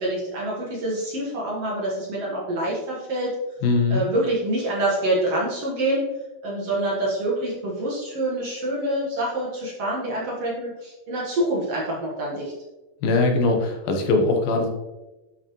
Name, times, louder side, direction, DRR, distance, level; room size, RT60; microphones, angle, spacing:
voice 1, 0.0-3.3 3.9-6.0 6.4-12.5, right 1 dB, 55° right, -4 dB, 1.9 m, -26 dB
voice 2, 3.6-4.0 13.0-14.7, left 3 dB, 75° left, 3 dB, 2.7 m, -21 dB
10.0 x 5.7 x 3.0 m, 1.0 s
omnidirectional pair, 4.4 m